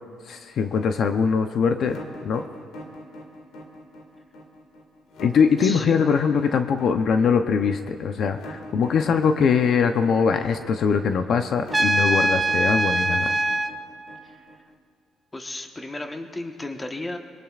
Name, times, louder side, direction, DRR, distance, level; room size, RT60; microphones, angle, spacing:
voice 1, 0.3-2.0 2.2-2.4 5.2-13.3, left 6 dB, 60° left, 7 dB, 0.7 m, -22 dB
sound 1, 1.8-14.7, left 1 dB, 85° left, 2.1 m, -41 dB
voice 2, 5.6-6.0 14.2-14.4 15.3-17.2, left 2 dB, 15° left, 4 dB, 1.2 m, -34 dB
Trumpet, 11.7-13.7, right 2 dB, 15° right, 0.7 m, -22 dB
24.0 x 22.5 x 2.5 m, 2.3 s
cardioid pair, 110°, 0 cm